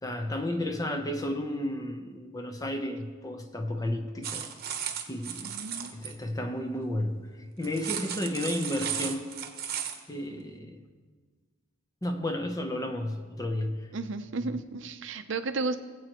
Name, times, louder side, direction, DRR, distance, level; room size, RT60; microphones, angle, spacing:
voice 1, 0.0-4.5 5.1-5.5 5.9-7.3 7.6-9.3 10.1-10.8 12.0-13.9, left 1 dB, 20° left, 5 dB, 0.8 m, -32 dB
sound 1, 4.2-6.1 7.6-10.0, right 8 dB, 50° right, 1.0 m, -35 dB
voice 2, 5.4-5.9 13.9-15.8, right 3 dB, 65° right, 10 dB, 0.6 m, -33 dB
20.0 x 7.9 x 3.0 m, 1.5 s
head